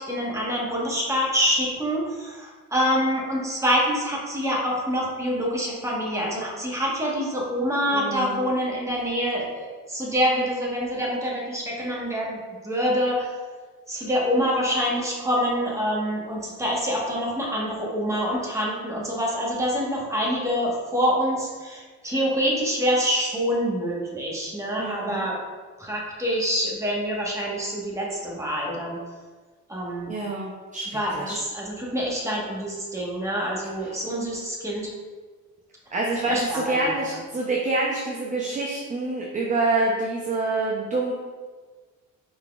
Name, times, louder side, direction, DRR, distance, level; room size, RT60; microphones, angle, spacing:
voice 1, 0.0-12.4 12.6-13.3 13.9-25.3 25.8-29.0 29.7-30.1 30.9-34.9 36.3-37.0, equal, 10° right, -4 dB, 1.2 m, -26 dB
voice 2, 7.9-8.4 24.8-25.2 30.1-31.4 33.8-33.9 35.9-41.1, right 2 dB, 25° right, -2 dB, 0.6 m, -27 dB
4.6 x 3.9 x 2.4 m, 1.4 s
cardioid pair, 100°, 31 cm